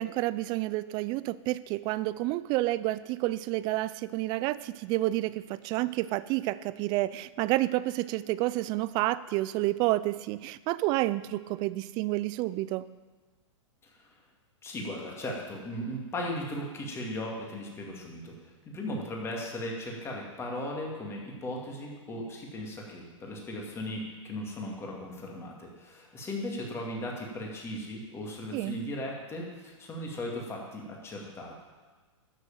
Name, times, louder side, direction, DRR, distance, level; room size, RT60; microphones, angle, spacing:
voice 1, 0.0-12.9 28.5-28.8, right 17 dB, 25° right, 17 dB, 0.3 m, -29 dB
voice 2, 14.6-31.6, left 1 dB, 15° left, -1 dB, 2.3 m, -37 dB
12.5 x 6.6 x 7.3 m, 1.4 s
hypercardioid pair, 135°, 16 cm